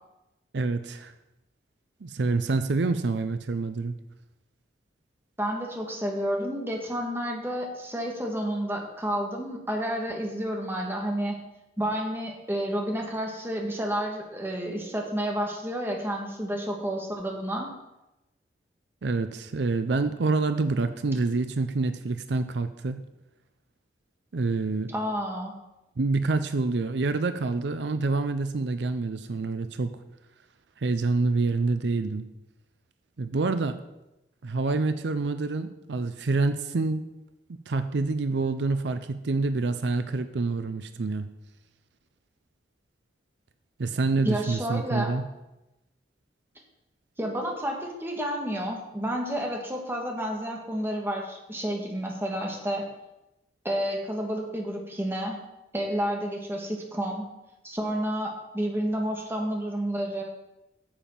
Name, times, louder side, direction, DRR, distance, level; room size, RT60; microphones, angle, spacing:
voice 1, 0.5-1.1 2.0-3.9 19.0-23.0 24.3-24.9 26.0-29.9 30.8-32.2 33.2-33.8 34.4-37.0 37.7-41.3 43.8-45.2, right 3 dB, 75° right, 10 dB, 0.5 m, -27 dB
voice 2, 5.4-11.4 11.8-17.7 24.9-25.5 44.2-45.1 47.2-52.9 53.6-55.4 55.7-57.3 57.6-60.2, equal, 15° right, 1 dB, 1.5 m, -30 dB
8.8 x 7.2 x 5.9 m, 0.96 s
head